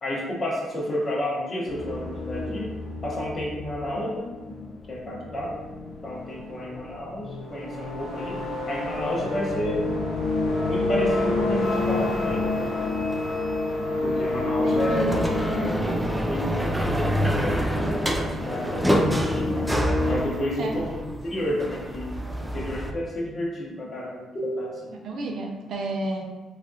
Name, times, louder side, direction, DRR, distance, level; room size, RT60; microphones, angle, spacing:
voice 1, 0.0-2.7 3.0-4.3 4.9-5.6 6.0-8.4 8.7-9.9 10.6-12.9 14.0-15.2 15.6-17.9 18.3-19.5 20.0-24.9, left 1 dB, 40° left, -3 dB, 0.9 m, -31 dB
sound 1, 1.7-20.2, left 2 dB, 70° left, 0.7 m, -29 dB
sound 2, 11.6-13.7 14.7-22.9, equal, 5° right, 0.3 m, -27 dB
voice 2, 14.4-15.2 20.6-20.7 25.0-26.2, right 2 dB, 70° right, 1 dB, 0.5 m, -31 dB
3.2 x 2.4 x 2.6 m, 1.2 s
cardioid pair, 90°, 0 cm